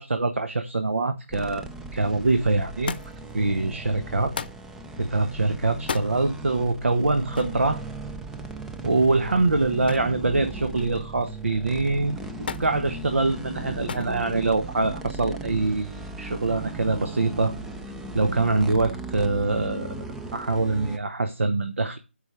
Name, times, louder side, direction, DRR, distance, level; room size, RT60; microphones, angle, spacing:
voice 1, 0.0-1.6 1.9-2.9 3.3-4.3 5.0-7.8 8.8-17.5 18.1-19.9 20.3-22.0, right 3 dB, 75° right, 1.2 m, -24 dB
sound 1, 1.3-21.0, right 3 dB, 5° right, 0.4 m, -37 dB
Thump thud, 2.9-3.3 4.3-4.7 5.8-6.1 7.3-7.6 9.9-10.2 10.5-11.1 12.5-12.7 13.9-14.2 15.1-15.6 16.6-16.7, left 6 dB, 50° left, 0.7 m, -34 dB
8.0 x 5.2 x 6.9 m
figure-of-eight pair, 155°, 7 cm